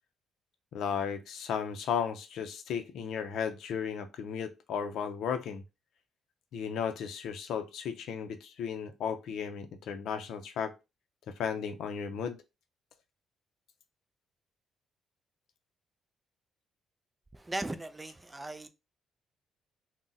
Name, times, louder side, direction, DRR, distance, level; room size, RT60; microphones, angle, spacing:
voice 1, 0.7-5.6 6.5-10.7 11.3-12.4, left 7 dB, 80° left, 0.4 m, -35 dB
voice 2, 17.3-18.7, right 2 dB, 15° right, 0.3 m, -38 dB
2.4 x 2.1 x 3.9 m
cardioid pair, 90°, 0 cm